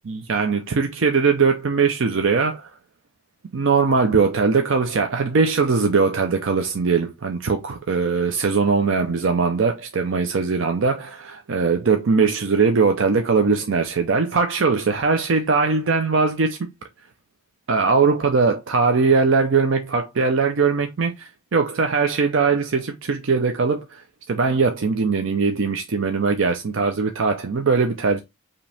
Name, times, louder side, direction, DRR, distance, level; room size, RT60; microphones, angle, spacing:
voice 1, 0.1-2.7 3.5-16.7 17.7-28.2, right 4 dB, 70° right, 0.6 m, -20 dB
5.0 x 2.9 x 3.4 m
head